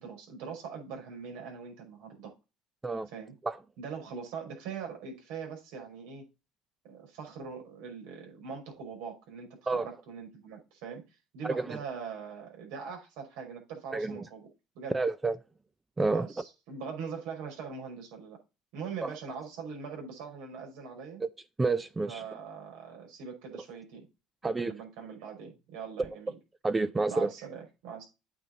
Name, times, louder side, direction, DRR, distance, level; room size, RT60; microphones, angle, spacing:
voice 1, 0.0-2.3 3.1-3.3 3.8-6.3 6.8-11.0 11.3-14.4 14.8-15.0 16.0-18.4 18.7-21.2 22.1-24.1 24.4-26.3 27.1-28.1, right 6 dB, 80° right, 5.5 m, -42 dB
voice 2, 11.4-11.8 13.9-14.2 14.9-15.4 16.0-16.4 19.0-19.1 21.2-21.3 21.6-22.2 24.4-24.7 26.6-27.3, right 3 dB, 15° right, 0.5 m, -29 dB
9.0 x 5.9 x 3.9 m
cardioid pair, 125°, 0 cm